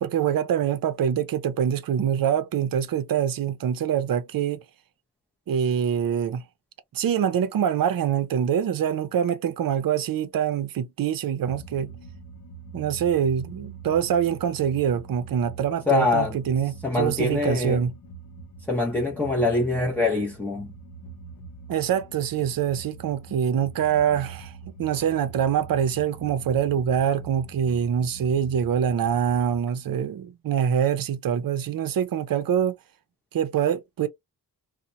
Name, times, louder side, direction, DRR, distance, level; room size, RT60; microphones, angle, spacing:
voice 1, 0.0-4.6 5.5-6.4 6.9-11.9 12.7-17.9 21.7-32.7 33.3-34.1, right 8 dB, 60° right, 0.6 m, -25 dB
sound 1, 11.4-29.6, right 4 dB, 55° left, 0.6 m, -43 dB
voice 2, 15.9-16.4 16.8-17.8 18.7-20.7, left 3 dB, 5° left, 0.5 m, -24 dB
2.8 x 2.1 x 2.5 m
wide cardioid pair, 140°, 40 cm